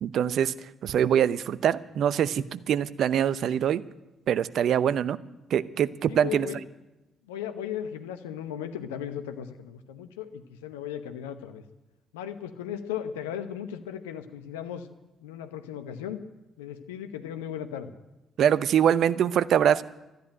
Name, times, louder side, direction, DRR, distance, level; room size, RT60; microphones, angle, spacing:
voice 1, 0.0-3.8 4.3-5.2 5.5-6.5 18.4-19.8, right 9 dB, 60° right, 16 dB, 0.6 m, -24 dB
voice 2, 6.1-6.6 7.3-11.6 12.1-14.9 15.2-16.2 16.6-17.9, left 9 dB, 85° left, 9 dB, 0.9 m, -36 dB
13.0 x 11.0 x 8.9 m, 1.0 s
hypercardioid pair, 45°, 0 cm